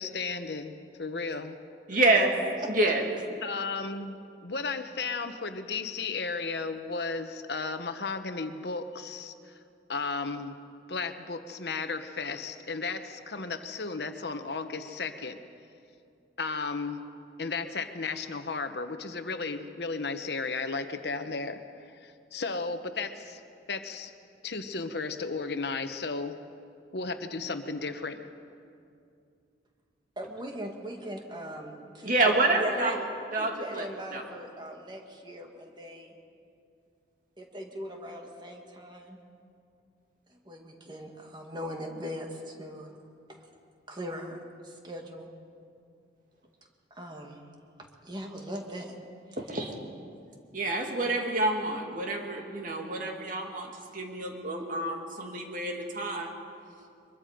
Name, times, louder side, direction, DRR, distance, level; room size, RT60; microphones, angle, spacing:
voice 1, 0.0-1.6 3.4-4.2 4.4-9.6 9.9-10.6 10.9-15.4 16.4-17.0 17.4-21.6 21.9-23.4 23.7-24.1 24.4-26.4 26.9-28.2, left 4 dB, 65° left, 8 dB, 1.1 m, -34 dB
voice 2, 1.9-2.3 2.7-3.0 32.0-33.0 33.3-33.9 34.1-34.2 49.4-49.7 50.5-56.3, right 2 dB, 50° right, 2 dB, 2.4 m, -28 dB
voice 3, 30.2-32.1 32.6-33.0 33.4-36.1 37.4-39.2 40.5-42.9 43.3-43.4 43.9-44.4 44.6-45.3 47.0-47.4 48.0-48.9, equal, 25° right, 2 dB, 2.1 m, -39 dB
23.5 x 22.5 x 5.2 m, 2.4 s
head